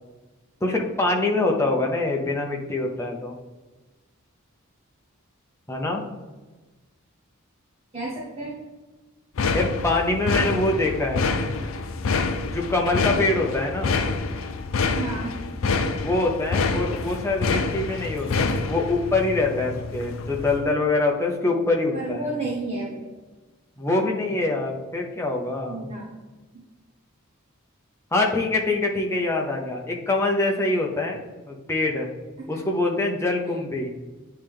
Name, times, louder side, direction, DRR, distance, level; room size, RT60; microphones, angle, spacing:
voice 1, 0.6-3.3 5.7-6.0 9.5-11.3 12.5-13.9 15.8-22.3 23.8-25.9 28.1-31.2 31.5-32.1 32.5-33.9, left 2 dB, 10° left, 0 dB, 0.7 m, -24 dB
voice 2, 7.9-8.5 14.9-15.3 21.9-23.1 25.7-26.1 32.5-32.6 33.5-33.6, right 2 dB, 25° right, -5 dB, 1.1 m, -31 dB
sound 1, 9.4-20.7, left 4 dB, 65° left, 0.4 m, -27 dB
8.7 x 3.3 x 3.6 m, 1.2 s
head